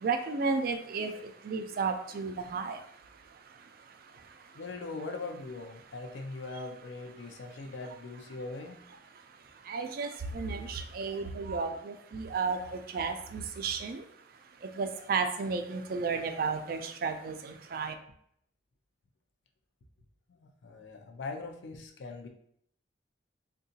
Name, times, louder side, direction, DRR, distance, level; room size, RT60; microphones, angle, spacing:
voice 1, 0.0-2.8 9.7-14.0 14.8-17.9, right 4 dB, 55° right, 7 dB, 0.3 m, -33 dB
voice 2, 4.5-8.8 20.3-22.3, left 3 dB, 85° left, 4 dB, 0.5 m, -41 dB
3.6 x 2.3 x 2.7 m, 0.68 s
head